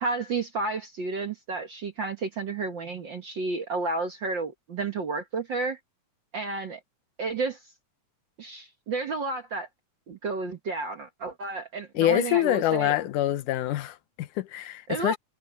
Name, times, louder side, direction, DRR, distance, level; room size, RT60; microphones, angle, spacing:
voice 1, 0.0-5.8 6.3-6.8 7.2-7.6 8.4-9.7 10.1-13.0 14.9-15.2, right 3 dB, 55° right, 1.4 m, -31 dB
voice 2, 12.0-15.2, left 13 dB, 85° left, 2.4 m, -25 dB
omnidirectional pair, 3.6 m